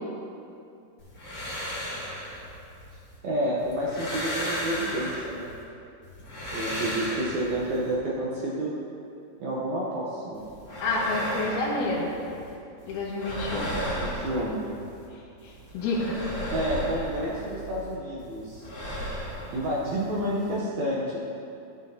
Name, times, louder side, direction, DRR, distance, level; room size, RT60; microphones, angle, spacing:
sound 1, 1.0-3.2 3.6-5.6 6.0-7.9 10.3-12.5 12.8-15.1 15.4-17.9 18.2-20.6, equal, 35° left, 2.6 m, -35 dB
voice 1, 3.2-5.5 6.5-8.7 9.4-10.5 14.0-14.7 16.5-18.6 19.5-21.2, right 1 dB, 75° right, -5 dB, 1.7 m, -29 dB
voice 2, 10.8-12.1 12.9-13.6 15.4-16.2, left 2 dB, 80° left, -4 dB, 2.9 m, -28 dB
13.0 x 7.7 x 2.7 m, 2.6 s
omnidirectional pair, 4.5 m